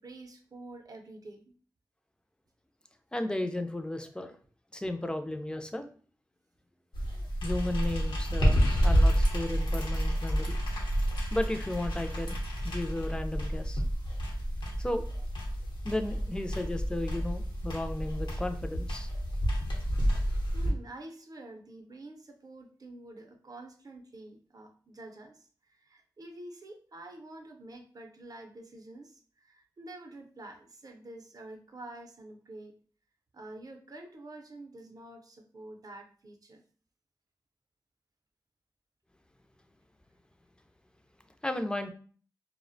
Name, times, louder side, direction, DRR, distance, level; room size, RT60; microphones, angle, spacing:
voice 1, 0.0-1.5 9.0-9.1 20.5-32.7 33.3-36.6, right 2 dB, 55° right, 3 dB, 0.5 m, -48 dB
voice 2, 3.1-4.3 4.7-5.9 7.4-10.6 11.3-13.8 14.8-15.1 15.8-19.1 41.4-41.9, left 1 dB, 10° left, 7 dB, 0.3 m, -34 dB
sound 1, 6.9-20.7, equal, 80° left, 0.7 m, -29 dB
2.3 x 2.1 x 2.5 m, 0.43 s
cardioid pair, 55°, 8 cm